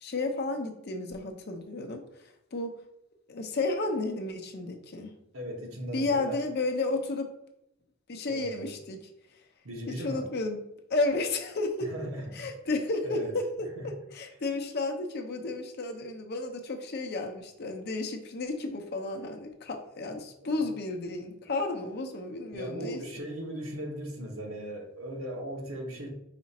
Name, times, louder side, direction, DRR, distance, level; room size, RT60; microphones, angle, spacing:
voice 1, 0.0-2.8 3.3-5.1 5.9-7.3 8.1-9.0 9.9-10.6 10.9-11.9 12.3-23.0, left 2 dB, 50° left, 4 dB, 0.6 m, -32 dB
voice 2, 5.3-6.4 8.3-8.7 9.6-10.3 11.8-12.5 13.0-13.4 13.8-13.9 20.4-20.5 22.5-26.1, equal, 80° right, 1 dB, 1.0 m, -38 dB
5.0 x 2.4 x 4.1 m, 0.83 s
head